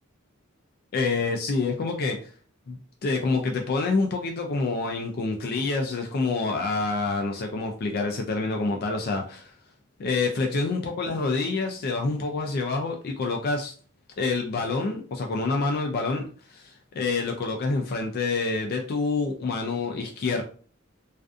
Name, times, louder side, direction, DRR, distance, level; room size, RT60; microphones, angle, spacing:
voice 1, 0.9-2.2 2.7-9.5 10.0-13.7 14.2-20.4, left 3 dB, 50° left, 3 dB, 0.3 m, -27 dB
2.4 x 2.4 x 2.3 m, 0.42 s
head